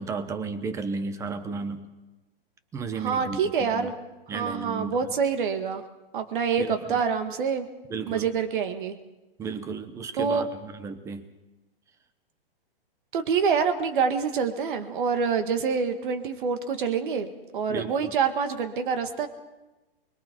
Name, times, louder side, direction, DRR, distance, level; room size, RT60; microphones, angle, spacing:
voice 1, 0.0-1.9 2.7-3.9 4.3-5.1 6.6-7.0 7.9-8.3 9.4-11.3 17.7-18.2, right 4 dB, 10° right, 11 dB, 0.8 m, -34 dB
voice 2, 3.0-3.9 4.3-5.8 6.1-7.7 8.1-9.0 10.1-10.4 13.1-19.3, right 6 dB, 55° right, 8 dB, 1.9 m, -26 dB
29.0 x 21.5 x 4.5 m, 1.1 s
hypercardioid pair, 155°, 30 cm